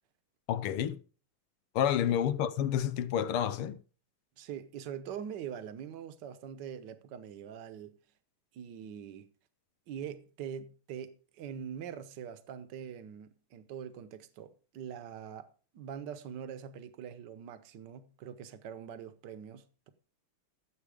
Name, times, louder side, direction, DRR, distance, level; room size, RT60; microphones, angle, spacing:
voice 1, 0.5-1.0 1.8-3.8, left 10 dB, 85° left, 1.7 m, -29 dB
voice 2, 4.4-7.9 8.5-9.3 9.9-15.5 15.7-19.9, right 8 dB, 60° right, 1.5 m, -43 dB
14.0 x 7.8 x 4.9 m
omnidirectional pair, 2.4 m